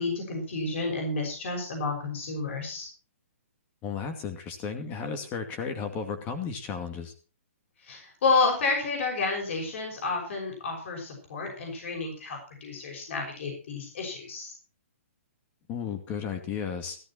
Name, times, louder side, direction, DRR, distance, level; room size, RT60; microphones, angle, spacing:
voice 1, 0.0-2.9 7.9-14.5, left 3 dB, 60° left, 1 dB, 6.1 m, -30 dB
voice 2, 3.8-7.1 15.7-17.0, left 6 dB, 25° left, 7 dB, 2.3 m, -34 dB
14.5 x 12.0 x 4.5 m, 0.35 s
hypercardioid pair, 155°, 8 cm